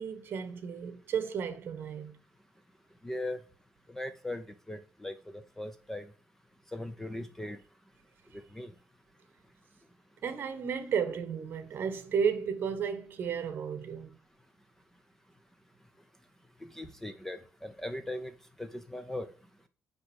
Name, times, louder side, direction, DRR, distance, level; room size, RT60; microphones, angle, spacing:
voice 1, 0.0-2.2 10.2-14.1, right 7 dB, 45° right, 1.3 m, -33 dB
voice 2, 3.0-3.4 3.9-6.1 6.7-7.6 8.3-8.7 16.6-18.3 18.6-19.3, left 1 dB, 5° left, 0.5 m, -39 dB
9.9 x 3.6 x 6.2 m
cardioid pair, 150°, 5 cm